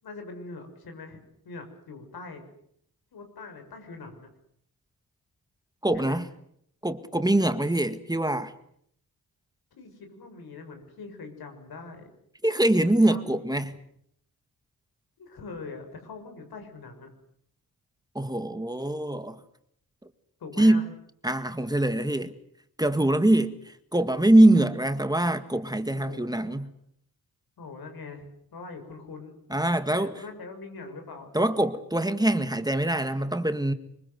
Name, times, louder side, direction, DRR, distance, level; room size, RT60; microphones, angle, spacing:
voice 1, 0.0-2.4 3.1-4.3 5.9-6.2 9.8-12.1 13.0-13.6 15.2-17.1 20.4-20.8 25.9-26.6 27.6-29.4 30.0-31.3, left 3 dB, 85° left, 6.9 m, -42 dB
voice 2, 5.8-6.3 6.8-8.5 12.4-13.8 18.2-19.4 20.6-20.9 21.2-22.4 22.8-26.7 29.5-30.1 31.3-33.7, right 1 dB, 10° right, 1.8 m, -23 dB
25.0 x 23.0 x 8.0 m
cardioid pair, 75°, 36 cm